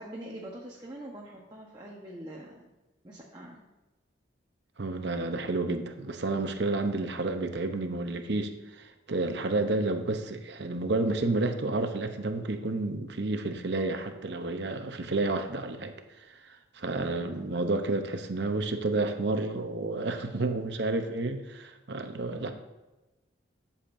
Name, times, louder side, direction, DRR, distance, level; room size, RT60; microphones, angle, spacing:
voice 1, 0.0-2.7 3.0-3.6 16.9-17.5 22.3-22.5, right 1 dB, 20° right, -3 dB, 1.0 m, -44 dB
voice 2, 4.8-15.9 16.3-22.5, right 2 dB, 60° right, 7 dB, 0.8 m, -30 dB
13.0 x 7.2 x 2.6 m, 1.1 s
head